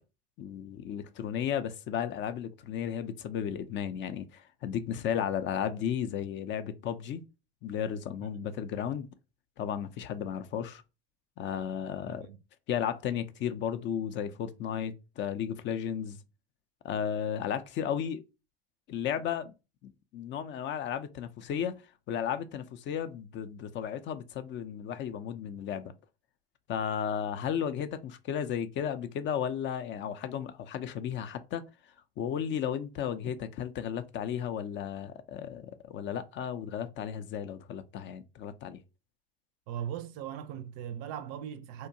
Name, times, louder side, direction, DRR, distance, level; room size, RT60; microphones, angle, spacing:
voice 1, 0.4-7.2 7.6-9.1 9.6-10.8 11.4-12.3 12.7-16.2 16.8-18.2 18.9-19.5 19.8-21.7 22.1-25.9 26.7-31.6 32.2-38.8, left 8 dB, 40° left, 0.4 m, -34 dB
voice 2, 12.1-12.4 39.7-41.9, right 9 dB, 55° right, 0.4 m, -39 dB
2.7 x 2.1 x 2.6 m
hypercardioid pair, 90°, 31 cm